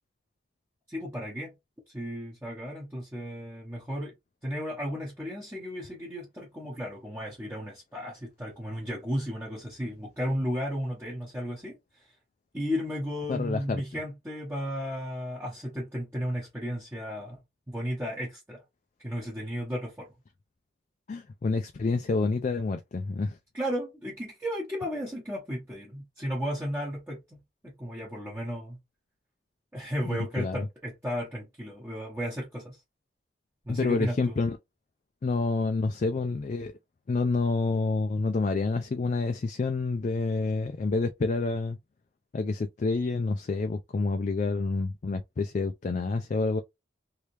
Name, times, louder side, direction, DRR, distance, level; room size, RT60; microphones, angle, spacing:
voice 1, 0.9-1.5 1.9-4.1 4.4-12.0 12.5-17.4 17.7-18.6 19.0-20.1 23.5-28.8 29.7-32.8 33.6-34.4, equal, 15° right, 1.0 m, -34 dB
voice 2, 13.3-13.8 21.1-23.4 30.1-30.6 33.7-34.6 35.2-36.7 37.1-41.8 42.3-46.6, left 3 dB, 40° left, 0.3 m, -28 dB
3.2 x 2.8 x 3.1 m
head